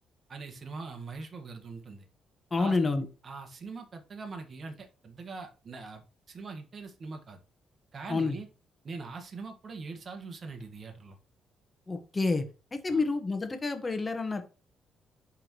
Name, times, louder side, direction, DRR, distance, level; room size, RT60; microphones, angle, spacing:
voice 1, 0.3-2.0 2.6-2.8 3.2-7.4 7.9-8.5 8.8-11.2 12.9-13.0, right 4 dB, 45° right, 4 dB, 1.6 m, -42 dB
voice 2, 2.5-3.0 8.1-8.4 11.9-12.4 12.7-14.4, left 3 dB, 25° left, 7 dB, 1.4 m, -28 dB
11.0 x 3.7 x 3.1 m, 0.33 s
cardioid pair, 90°, 0 cm